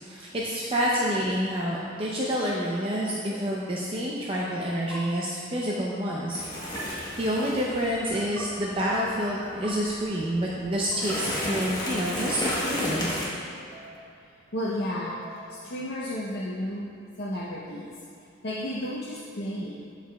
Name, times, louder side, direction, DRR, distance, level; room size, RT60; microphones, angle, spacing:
voice 1, 0.0-6.4 6.8-13.1, equal, 30° right, -4 dB, 0.6 m, -28 dB
sound 1, 1.0-1.3 3.1-3.4 4.7-5.0 6.6-6.8 7.9-8.4 9.2-9.7 10.7-11.2 12.1-12.6 13.6-14.2 14.9-15.7, right 2 dB, 85° right, 1.0 m, -44 dB
sound 2, 6.3-13.3, left 1 dB, 20° left, 1.2 m, -34 dB
voice 2, 14.2-16.9 17.2-17.9 18.4-19.8, equal, 55° left, -6 dB, 0.7 m, -33 dB
12.5 x 4.8 x 2.3 m, 2.6 s
head